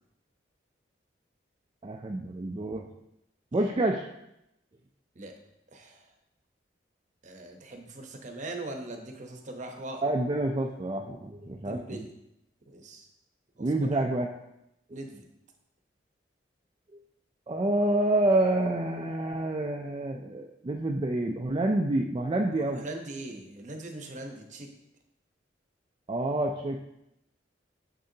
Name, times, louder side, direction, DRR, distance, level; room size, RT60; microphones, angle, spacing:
voice 1, 1.8-2.9 3.5-4.1 10.0-12.0 13.6-14.3 17.5-22.8 26.1-26.8, right 1 dB, 25° right, 0 dB, 0.4 m, -28 dB
voice 2, 5.7-6.1 7.2-10.0 11.6-12.1 12.7-13.1 13.6-14.0 14.9-15.3 22.6-24.7, right 2 dB, 45° right, 3 dB, 0.8 m, -41 dB
6.8 x 6.4 x 2.8 m, 0.85 s
head